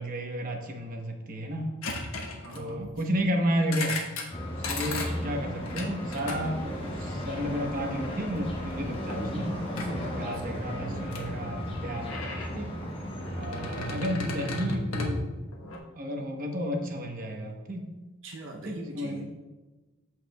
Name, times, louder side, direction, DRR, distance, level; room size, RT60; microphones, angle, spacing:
voice 1, 0.0-1.7 2.5-4.0 4.7-9.6 10.1-12.1 12.5-12.7 13.4-17.9 18.6-19.2, equal, 45° right, 2 dB, 1.0 m, -32 dB
sound 1, 1.8-3.0 3.6-4.3 4.6-5.1 5.7-7.4 8.0-8.4 8.7-9.2 9.8-10.0 11.1-11.2 11.7-12.5 13.1-15.8, left 2 dB, 90° left, 1.2 m, -35 dB
voice 2, 2.4-2.9 9.5-11.1 13.5-13.8 18.2-19.2, right 1 dB, 65° right, 0 dB, 0.8 m, -42 dB
sound 2, 4.3-13.9, equal, 25° left, 1.3 m, -35 dB
14.0 x 4.7 x 2.3 m, 1.2 s
head